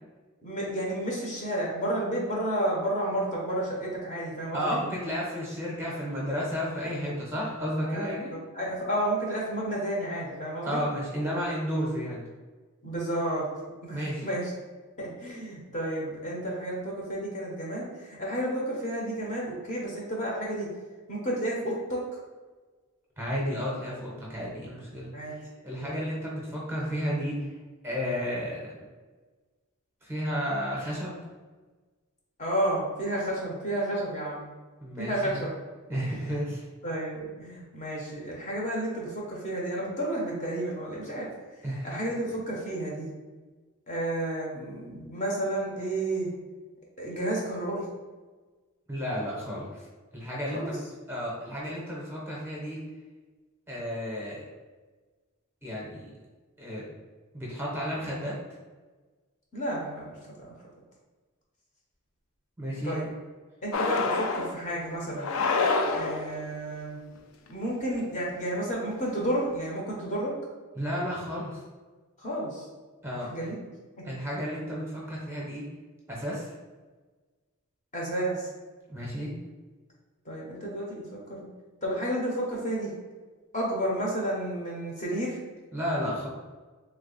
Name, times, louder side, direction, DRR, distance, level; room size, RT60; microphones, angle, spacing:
voice 1, 0.4-4.8 7.9-10.8 12.8-13.5 13.8-14.5 15.0-20.7 21.1-22.0 25.1-25.4 25.8-26.0 32.4-34.5 35.0-35.5 36.1-36.4 36.8-41.3 41.8-43.1 43.9-46.3 47.0-47.9 50.5-50.7 59.5-60.5 62.8-63.1 63.6-65.3 65.9-67.0 67.5-70.3 72.2-72.7 73.3-73.6 74.0-74.1 77.9-78.5 80.2-81.5 81.8-82.9 83.5-85.4, right 1 dB, 35° left, -3 dB, 0.8 m, -31 dB
voice 2, 4.5-8.3 10.6-12.2 13.9-14.3 23.2-27.5 27.8-28.7 30.0-31.2 34.8-35.4 35.9-36.6 41.6-41.9 48.9-49.8 50.1-50.8 51.1-52.8 53.7-54.4 55.6-56.1 56.6-56.8 57.3-58.4 62.6-63.0 70.7-71.6 73.0-73.5 74.0-75.7 76.1-76.5 78.9-79.3 85.7-86.3, equal, 10° right, -5 dB, 0.8 m, -32 dB
Object Slide on table, 63.7-64.6 65.2-66.4, left 4 dB, 65° left, 0.4 m, -27 dB
3.2 x 2.3 x 3.9 m, 1.3 s
head